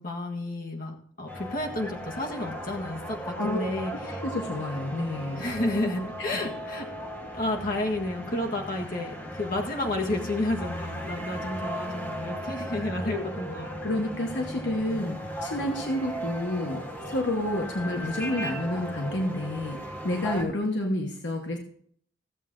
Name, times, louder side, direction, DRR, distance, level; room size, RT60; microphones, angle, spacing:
voice 1, 0.0-4.2 5.4-6.9 7.3-13.7, left 1 dB, 50° left, 0 dB, 1.6 m, -31 dB
sound 1, 1.3-20.4, equal, 10° left, 1.3 m, -36 dB
voice 2, 3.3-3.7 4.2-5.4 6.2-6.4 13.1-13.2 13.8-21.6, left 1 dB, 75° left, 2 dB, 1.1 m, -30 dB
15.0 x 7.5 x 3.7 m, 0.62 s
head